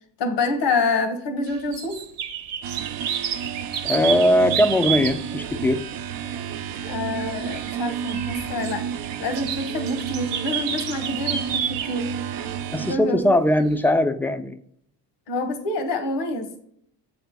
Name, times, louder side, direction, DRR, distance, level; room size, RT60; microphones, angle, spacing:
voice 1, 0.2-2.0 6.9-8.9 9.2-12.1 12.8-13.4 15.3-16.5, left 3 dB, 70° left, 7 dB, 1.3 m, -27 dB
sound 1, 1.5-5.6 6.2-13.3 13.9-14.0, right 8 dB, 85° right, 0.9 m, -31 dB
sound 2, 2.6-13.0, right 8 dB, 55° right, 0.7 m, -32 dB
voice 2, 3.8-5.8 12.7-14.6, left 1 dB, 5° left, 10 dB, 0.5 m, -20 dB
7.2 x 3.5 x 5.2 m, 0.68 s
supercardioid pair, 80°, 44 cm